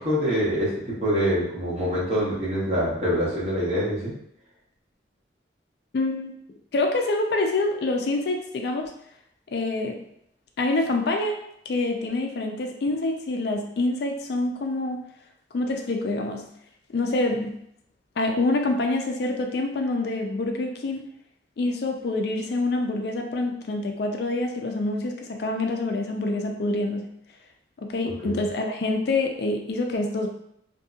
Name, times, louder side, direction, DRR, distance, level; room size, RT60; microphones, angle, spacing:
voice 1, 0.0-4.1 28.0-28.4, equal, 35° right, -7 dB, 1.0 m, -25 dB
voice 2, 5.9-6.4 6.7-8.9 9.5-10.0 10.6-11.4 11.7-15.0 15.5-16.4 16.9-17.5 18.2-21.0 21.6-27.1 27.8-30.3, left 2 dB, 60° left, 3 dB, 0.4 m, -26 dB
2.7 x 2.6 x 2.3 m, 0.73 s
head